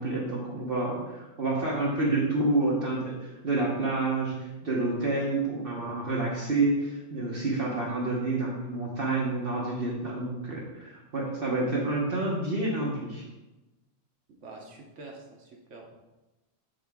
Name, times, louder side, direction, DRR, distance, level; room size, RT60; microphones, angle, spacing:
voice 1, 0.0-13.2, right 2 dB, 45° right, -3 dB, 1.3 m, -29 dB
voice 2, 14.4-15.9, right 3 dB, 65° right, 0 dB, 1.3 m, -46 dB
7.7 x 5.6 x 3.5 m, 1.0 s
omnidirectional pair, 1.3 m